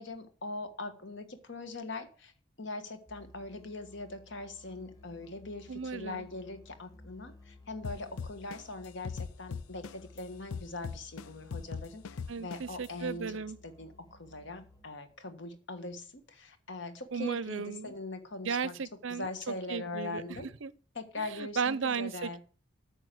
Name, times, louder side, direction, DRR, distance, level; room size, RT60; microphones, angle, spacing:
voice 1, 0.0-2.3 2.6-18.8 19.1-20.5 20.9-22.4, left 2 dB, 55° left, 1.5 m, -41 dB
Musical instrument, 3.1-15.1, left 2 dB, 20° left, 1.9 m, -56 dB
voice 2, 5.7-6.3 12.3-13.6 17.1-17.9 18.4-20.2 20.6-20.7 21.2-22.4, right 5 dB, 60° right, 0.6 m, -35 dB
sound 1, 7.8-10.2 10.5-12.9, left 5 dB, 90° left, 0.5 m, -39 dB
9.0 x 6.5 x 7.8 m
head